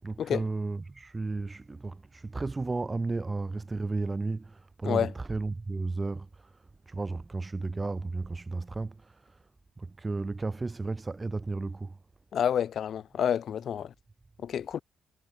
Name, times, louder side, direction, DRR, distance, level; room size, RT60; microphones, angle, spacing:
voice 1, 0.0-6.6 6.9-9.4 9.8-12.0, right 3 dB, 25° right, 6.7 m, -33 dB
voice 2, 12.3-13.9 14.4-14.8, left 9 dB, 60° left, 2.3 m, -29 dB
cardioid pair, 90°, 0 cm